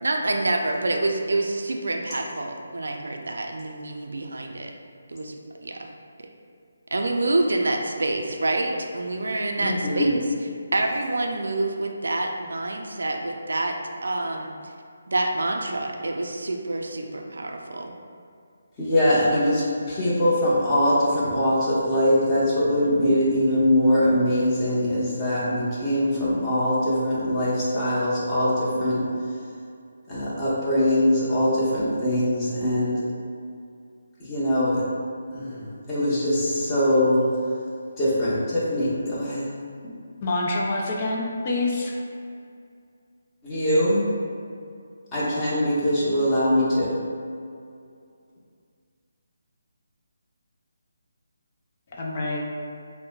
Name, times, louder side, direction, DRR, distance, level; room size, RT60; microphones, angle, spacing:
voice 1, 0.0-4.7 5.1-5.9 6.9-10.2 10.7-13.8 14.0-14.7 15.1-18.0, right 2 dB, 80° right, 2 dB, 0.4 m, -27 dB
voice 2, 9.6-10.1 18.8-29.0 30.1-33.0 34.2-34.8 35.3-37.2 38.0-39.5 43.4-44.0 45.1-47.0, left 1 dB, 15° left, -10 dB, 0.9 m, -22 dB
voice 3, 40.2-42.0 51.9-52.4, left 2 dB, 35° left, -2 dB, 0.4 m, -26 dB
5.2 x 2.1 x 2.3 m, 2.4 s
figure-of-eight pair, 160°, 0 cm